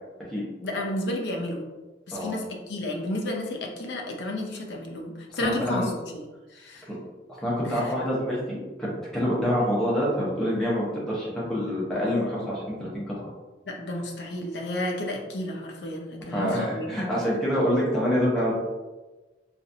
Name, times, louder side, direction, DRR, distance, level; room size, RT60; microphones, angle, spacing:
voice 1, 0.6-1.6 2.1-6.2 6.5-6.9 7.6-7.9 13.7-16.9, left 1 dB, 70° left, 0 dB, 0.6 m, -32 dB
voice 2, 5.4-5.9 7.4-13.3 16.3-18.5, equal, 5° left, -7 dB, 0.9 m, -26 dB
3.9 x 2.5 x 2.7 m, 1.2 s
head